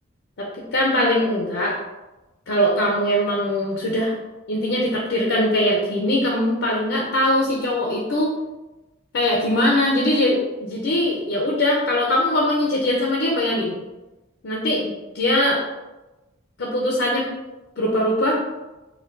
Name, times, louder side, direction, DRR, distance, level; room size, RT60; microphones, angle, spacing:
voice 1, 0.7-1.8 2.5-4.1 4.5-8.3 9.1-13.8 14.4-15.6 16.6-17.3 17.8-18.3, left 1 dB, 65° left, -3 dB, 0.5 m, -21 dB
4.3 x 2.3 x 2.5 m, 1.1 s
head